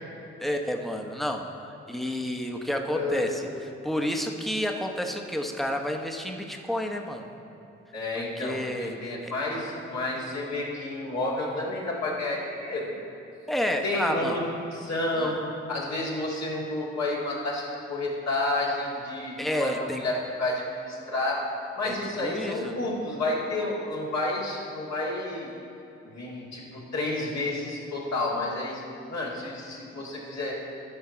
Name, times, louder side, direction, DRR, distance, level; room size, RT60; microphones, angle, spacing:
voice 1, 0.4-3.5 3.8-7.3 8.1-9.3 13.5-14.4 15.2-15.3 19.4-20.0 21.8-22.7, equal, ahead, 3 dB, 1.0 m, -30 dB
voice 2, 2.9-3.3 7.9-12.9 13.8-14.4 14.7-15.4 15.7-21.4 21.8-25.5 26.0-28.8 29.1-30.5, left 2 dB, 60° left, -5 dB, 2.2 m, -30 dB
11.0 x 5.7 x 4.4 m, 2.8 s
hypercardioid pair, 40°, 30 cm